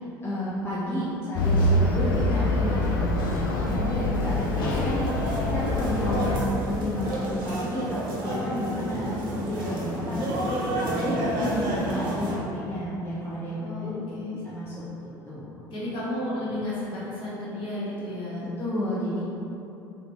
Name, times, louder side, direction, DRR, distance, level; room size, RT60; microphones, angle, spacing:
voice 1, 0.2-10.4 10.8-14.0 14.5-14.7 15.0-15.6 18.6-19.2, left 1 dB, 20° left, -9 dB, 0.7 m, -31 dB
sound 1, 1.3-6.4, left 1 dB, 80° left, 0.4 m, -25 dB
sound 2, 3.7-12.4, right 1 dB, 75° right, 0.7 m, -31 dB
voice 2, 8.8-9.4 13.6-14.5 15.7-18.5, left 1 dB, 50° left, -9 dB, 1.5 m, -33 dB
3.2 x 2.7 x 3.1 m, 2.9 s
hypercardioid pair, 70°, 11 cm